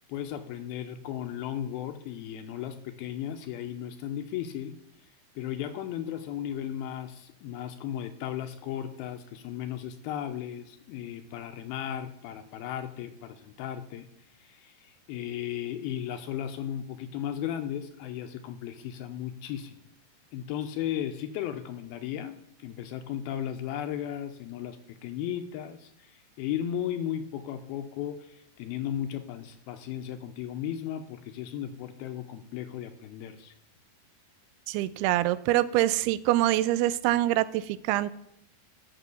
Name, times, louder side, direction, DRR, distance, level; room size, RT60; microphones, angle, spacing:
voice 1, 0.1-4.8 5.4-14.1 14.4-19.8 20.3-33.5, left 10 dB, 80° left, 7 dB, 2.4 m, -35 dB
voice 2, 34.7-38.1, right 15 dB, 85° right, 16 dB, 2.5 m, -25 dB
13.0 x 5.8 x 6.9 m, 0.81 s
omnidirectional pair, 4.6 m